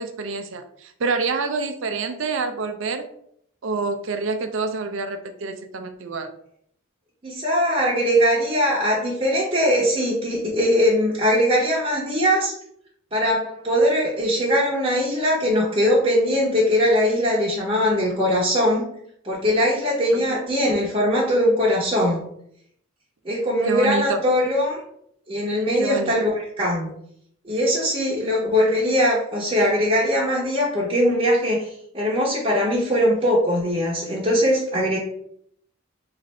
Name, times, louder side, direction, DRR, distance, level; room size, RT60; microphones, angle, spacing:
voice 1, 0.0-3.0 3.6-6.3 14.3-14.5 20.1-20.2 23.7-24.2 25.8-26.1, right 4 dB, 60° right, 7 dB, 0.5 m, -27 dB
voice 2, 7.2-12.5 13.1-18.9 19.2-22.2 23.2-24.8 25.3-26.9 27.4-35.0, equal, 25° right, -7 dB, 0.8 m, -21 dB
3.2 x 2.6 x 4.0 m, 0.69 s
head